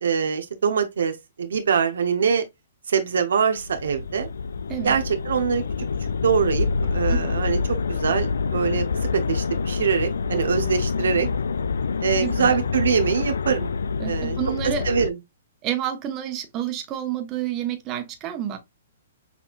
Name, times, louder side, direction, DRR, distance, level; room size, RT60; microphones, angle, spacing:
voice 1, 0.0-2.4 2.9-4.3 4.8-5.6 6.0-8.8 9.1-11.3 12.0-13.7 14.1-14.4 14.8-15.2, right 6 dB, 80° right, 0.8 m, -23 dB
sound 1, 3.6-15.1, left 5 dB, 85° left, 0.3 m, -26 dB
voice 2, 12.2-12.6 14.0-14.8 15.6-18.6, right 10 dB, 30° right, 1.0 m, -29 dB
5.9 x 2.8 x 2.5 m
hypercardioid pair, 140°, 0 cm